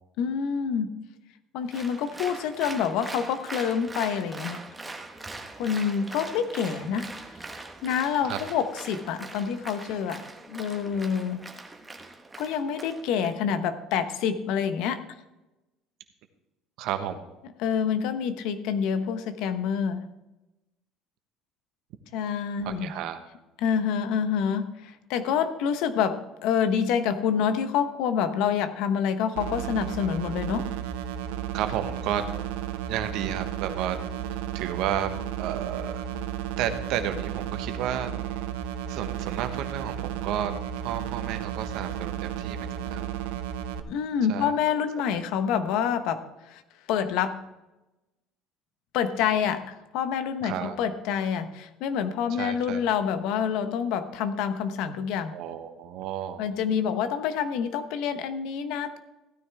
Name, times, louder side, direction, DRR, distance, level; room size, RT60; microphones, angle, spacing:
voice 1, 0.2-0.9 1.5-4.6 5.6-7.1 7.8-11.5 12.4-15.0 17.6-20.1 22.1-22.9 23.6-30.7 43.9-46.6 46.9-47.5 48.9-55.3 56.4-59.0, left 7 dB, 75° left, 10 dB, 1.0 m, -27 dB
Applause, 1.7-13.3, right 2 dB, 15° right, 1.3 m, -41 dB
voice 2, 16.8-17.2 22.6-23.2 31.5-32.2 32.9-34.0 34.5-35.1 35.4-36.0 36.6-38.1 38.9-43.1 44.3-44.5 50.4-50.8 52.3-52.8 55.3-56.4, right 10 dB, 70° right, 8 dB, 1.3 m, -32 dB
sound 1, 29.4-43.8, right 10 dB, 90° right, 0.7 m, -33 dB
15.5 x 9.6 x 3.5 m, 1.0 s
supercardioid pair, 90°, 0 cm